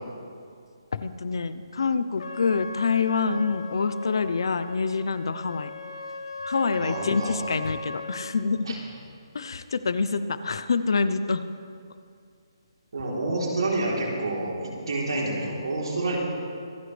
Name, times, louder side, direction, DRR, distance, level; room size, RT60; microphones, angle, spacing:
voice 1, 0.9-5.7 6.5-8.7 9.3-11.4, left 4 dB, 65° left, 13 dB, 0.7 m, -26 dB
Trumpet, 2.2-8.4, left 3 dB, 85° left, 1.3 m, -39 dB
voice 2, 6.7-7.4 8.6-8.8 12.9-16.2, right 2 dB, 75° right, -3 dB, 3.6 m, -28 dB
25.5 x 9.5 x 3.4 m, 2.3 s
hypercardioid pair, 175°, 3 cm